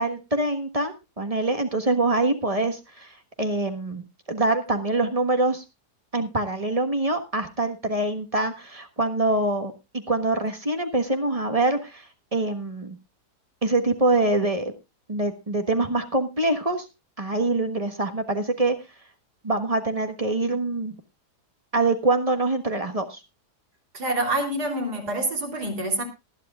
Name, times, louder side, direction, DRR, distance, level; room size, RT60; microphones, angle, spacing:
voice 1, 0.0-4.0 4.3-5.6 6.1-13.0 13.6-14.7 15.1-16.8 17.2-18.8 19.4-20.9 21.7-23.2, right 2 dB, 25° right, 6 dB, 1.4 m, -25 dB
voice 2, 23.9-26.0, right 1 dB, 70° right, 2 dB, 4.1 m, -26 dB
19.5 x 11.5 x 2.4 m, 0.25 s
omnidirectional pair, 1.7 m